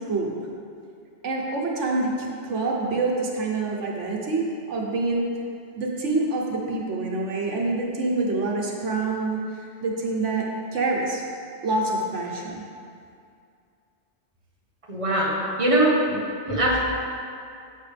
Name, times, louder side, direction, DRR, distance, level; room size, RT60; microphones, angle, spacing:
voice 1, 1.2-5.3 5.8-11.2 11.6-12.6, right 3 dB, 85° right, -1 dB, 1.4 m, -26 dB
voice 2, 14.9-16.2 16.5-16.8, right 1 dB, 30° right, -4 dB, 1.6 m, -22 dB
11.0 x 8.3 x 3.4 m, 2.4 s
omnidirectional pair, 1.2 m